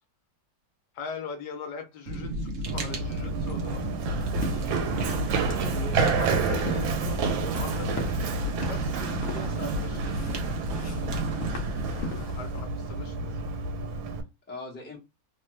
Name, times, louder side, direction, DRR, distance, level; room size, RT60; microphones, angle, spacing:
voice 1, 0.9-3.8 6.1-10.3 12.1-13.4, left 5 dB, 75° left, 1.1 m, -41 dB
Fire, 2.1-11.9, right 2 dB, 65° right, 0.7 m, -33 dB
Run, 2.7-14.2, right 4 dB, 85° right, 1.4 m, -30 dB
sound 1, 4.2-12.6, left 1 dB, 55° left, 0.8 m, -40 dB
voice 2, 4.6-6.6 11.0-11.8 14.5-15.0, left 2 dB, 10° left, 0.7 m, -43 dB
3.2 x 2.0 x 3.1 m
omnidirectional pair, 2.1 m